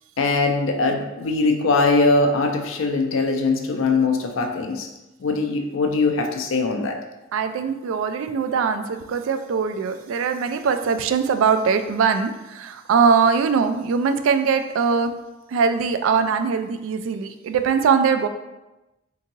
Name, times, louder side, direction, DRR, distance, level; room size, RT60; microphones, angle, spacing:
voice 1, 0.2-4.9 5.2-7.0, left 3 dB, 90° left, 4 dB, 0.5 m, -21 dB
voice 2, 7.3-15.1 15.5-18.3, right 6 dB, 85° right, 9 dB, 0.3 m, -21 dB
3.7 x 2.9 x 2.6 m, 1.0 s
head